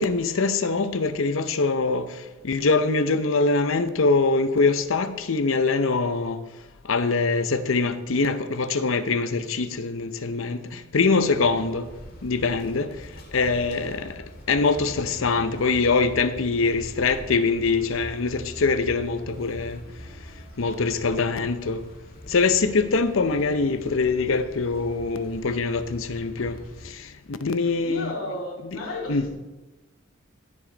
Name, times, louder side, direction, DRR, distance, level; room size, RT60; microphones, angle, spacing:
voice 1, 0.0-6.4 6.8-11.9 12.2-19.8 20.6-21.8 22.3-28.1 28.6-28.8 29.1-29.3, left 4 dB, 70° left, 0.7 m, -24 dB
sound 1, 11.2-26.9, equal, 45° left, 1.9 m, -43 dB
voice 2, 23.3-23.6 27.6-29.3, left 1 dB, 90° left, 2.3 m, -35 dB
16.5 x 6.1 x 3.9 m
head